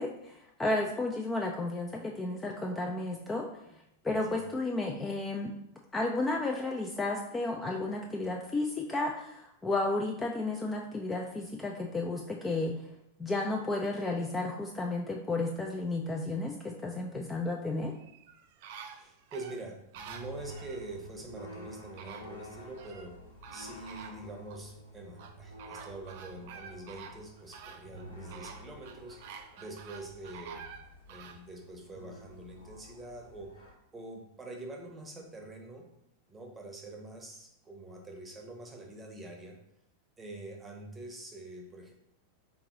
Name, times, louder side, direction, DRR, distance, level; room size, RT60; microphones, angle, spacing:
voice 1, 0.0-3.4 4.0-5.5 5.9-12.7 13.2-17.9, left 2 dB, 15° left, 0 dB, 0.4 m, -32 dB
sound 1, 17.9-20.8 21.6-21.7 22.0-23.1 23.4-24.6 25.2-31.4 31.9-32.0, right 6 dB, 50° right, 0.4 m, -48 dB
voice 2, 18.9-23.2 23.5-30.7 31.1-33.5 33.9-35.9 36.3-39.6 40.2-41.9, right 2 dB, 15° right, 2 dB, 0.8 m, -45 dB
sound 2, 19.9-33.7, equal, 75° left, 0.9 m, -50 dB
3.7 x 2.9 x 3.6 m, 0.78 s
figure-of-eight pair, 90°, 0 cm